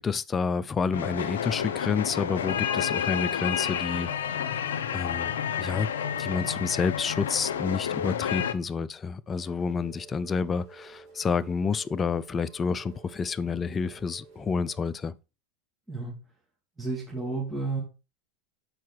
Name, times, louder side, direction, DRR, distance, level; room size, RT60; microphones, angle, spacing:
voice 1, 0.0-4.4 4.9-5.9 6.2-15.1, left 5 dB, 25° left, 0.5 m, -29 dB
sound 1, 0.9-8.5, left 8 dB, 85° left, 0.6 m, -30 dB
Rain, 9.3-14.9, right 4 dB, 70° right, 4.0 m, -51 dB
voice 2, 16.8-17.8, right 3 dB, 15° right, 2.5 m, -31 dB
6.3 x 4.6 x 4.5 m
hypercardioid pair, 100°, 0 cm